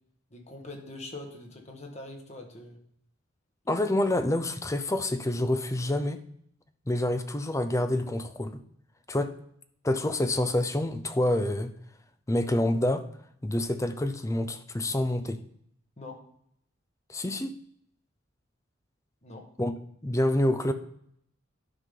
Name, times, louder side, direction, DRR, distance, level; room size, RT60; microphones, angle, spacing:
voice 1, 0.3-2.8 16.0-16.2 19.2-19.4, left 2 dB, 35° left, 2 dB, 1.5 m, -43 dB
voice 2, 3.7-6.2 6.9-8.6 9.1-9.3 9.8-11.7 12.3-13.1 13.4-15.4 17.1-17.6 19.6-19.7 20.0-20.7, left 1 dB, 15° left, 9 dB, 0.5 m, -27 dB
11.0 x 5.8 x 3.8 m, 0.69 s
head